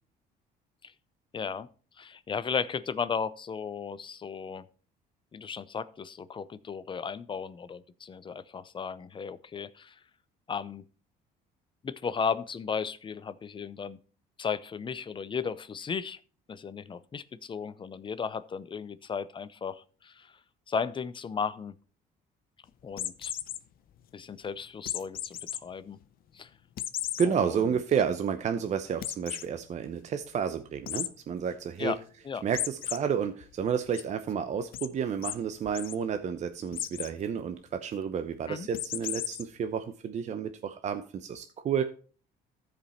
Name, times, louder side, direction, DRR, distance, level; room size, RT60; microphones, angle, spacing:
voice 1, 1.3-1.7 2.0-4.6 5.3-9.9 10.5-10.8 11.8-14.0 14.4-16.2 16.5-20.3 20.7-21.7 22.8-23.3 24.1-26.0 26.3-26.5 27.2-27.6 31.8-32.0 32.3-32.4 38.5-38.7, left 6 dB, 30° left, 15 dB, 0.6 m, -35 dB
sound 1, 22.9-23.6 24.9-25.6 26.0-26.1 26.8-27.3 27.8-27.9 28.1-28.2 29.0-29.5 30.9-31.1 32.5-33.0 33.4-34.0 34.7-34.9 35.2-35.4 35.6-36.0 36.7-37.1 38.7-39.4, left 12 dB, 60° left, 0.7 m, -34 dB
voice 2, 27.2-31.9 32.4-41.8, right 7 dB, 45° right, 8 dB, 0.7 m, -31 dB
14.0 x 5.2 x 4.2 m, 0.40 s
cardioid pair, 110°, 17 cm